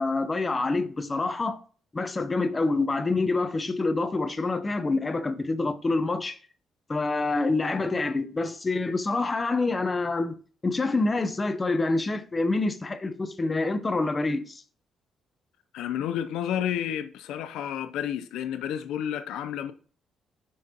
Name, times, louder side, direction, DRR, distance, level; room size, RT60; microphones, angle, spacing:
voice 1, 0.0-1.6 1.9-6.4 6.9-10.4 10.6-14.6, left 3 dB, 25° left, 0.7 m, -26 dB
voice 2, 15.7-19.7, left 10 dB, 85° left, 0.5 m, -31 dB
6.4 x 5.2 x 2.9 m
cardioid pair, 90°, 0 cm